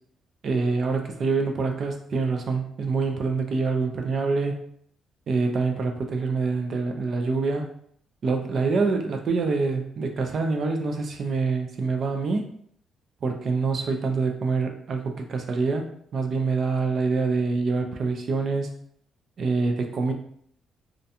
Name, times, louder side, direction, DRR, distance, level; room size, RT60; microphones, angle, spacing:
voice 1, 0.4-4.6 5.3-7.7 8.2-12.4 13.2-18.7 19.4-20.1, right 4 dB, 40° right, 4 dB, 0.3 m, -26 dB
2.5 x 2.1 x 2.7 m, 0.65 s
cardioid pair, 165°, 0 cm